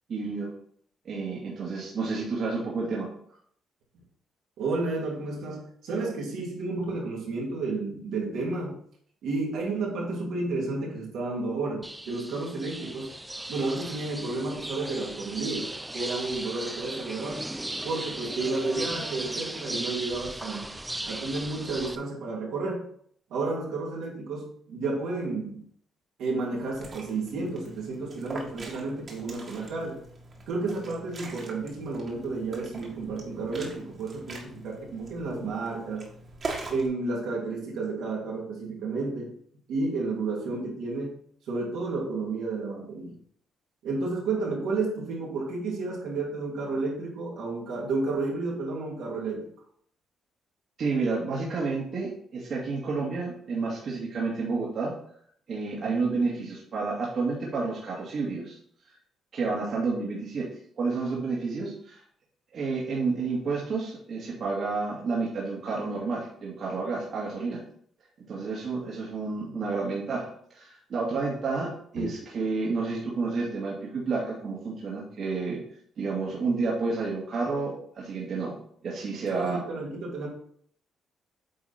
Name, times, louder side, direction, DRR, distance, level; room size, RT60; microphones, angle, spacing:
voice 1, 0.1-0.5 1.0-3.1 50.8-54.9 55.5-58.6 59.3-60.5 60.8-62.0 62.5-67.6 68.3-70.3 70.6-75.6 76.0-78.6 78.8-79.6, right 4 dB, 60° right, -4 dB, 2.1 m, -30 dB
voice 2, 4.6-8.8 9.2-13.1 13.5-15.7 15.9-17.5 17.8-20.8 21.1-22.9 23.3-25.6 26.2-30.0 30.5-36.1 36.7-39.3 39.7-41.2 41.5-43.2 43.8-49.4 55.8-55.9 72.0-72.1 79.3-80.3, right 3 dB, 85° right, -3 dB, 2.8 m, -31 dB
sound 1, 11.8-22.0, right 1 dB, 10° right, 0.5 m, -37 dB
Liquid, 26.5-36.9, right 3 dB, 45° right, 1.9 m, -42 dB
8.5 x 3.9 x 4.3 m, 0.62 s
cardioid pair, 90°, 0 cm